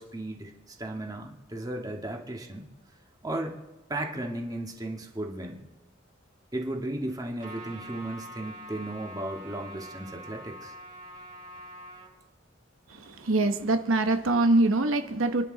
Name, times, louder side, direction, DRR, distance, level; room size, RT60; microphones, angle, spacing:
voice 1, 0.0-2.7 3.2-3.6 3.9-5.7 6.5-10.7, right 1 dB, 20° right, 1 dB, 1.7 m, -35 dB
Trumpet, 7.4-12.1, equal, 35° right, 4.3 m, -44 dB
voice 2, 12.9-15.4, right 2 dB, 85° right, 7 dB, 1.0 m, -24 dB
28.5 x 10.5 x 3.9 m, 1.0 s
head